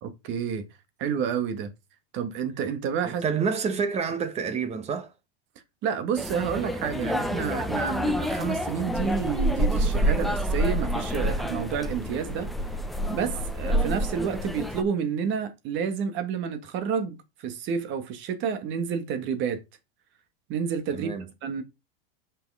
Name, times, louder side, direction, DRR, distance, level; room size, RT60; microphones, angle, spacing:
voice 1, 0.0-0.7 1.0-1.7 2.1-3.2 5.8-12.5 13.1-17.2 17.4-19.6 20.5-21.6, right 7 dB, 40° right, 1.9 m, -29 dB
voice 2, 3.0-5.1 20.9-21.3, right 6 dB, 20° right, 1.1 m, -28 dB
sound 1, 6.2-14.8, equal, ahead, 0.7 m, -28 dB
6.7 x 6.1 x 4.9 m
supercardioid pair, 150°, 30 cm